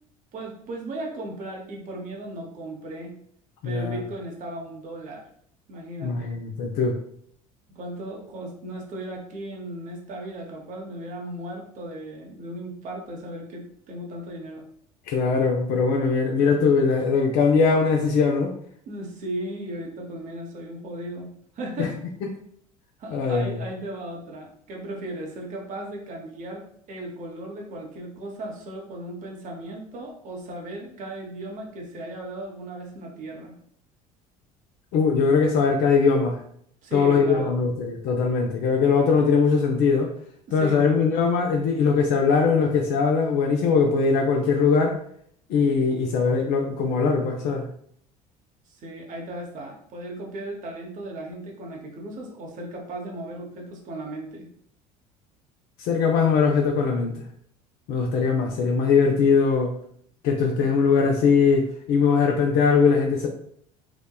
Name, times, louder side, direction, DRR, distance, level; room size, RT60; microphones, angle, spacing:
voice 1, 0.3-3.2 3.6-5.2 5.7-6.4 7.7-14.6 18.9-22.0 23.0-33.6 36.8-37.6 40.5-41.1 48.7-54.5, right 1 dB, 45° right, 0 dB, 0.7 m, -36 dB
voice 2, 3.6-4.0 6.0-7.0 15.1-18.5 21.8-21.9 23.1-23.5 34.9-36.4 36.9-40.1 40.5-45.0 45.5-47.7 55.8-57.1 57.9-59.7 60.2-63.3, left 5 dB, 55° left, 2 dB, 0.4 m, -21 dB
2.8 x 2.1 x 2.2 m, 0.64 s
hypercardioid pair, 65°, 19 cm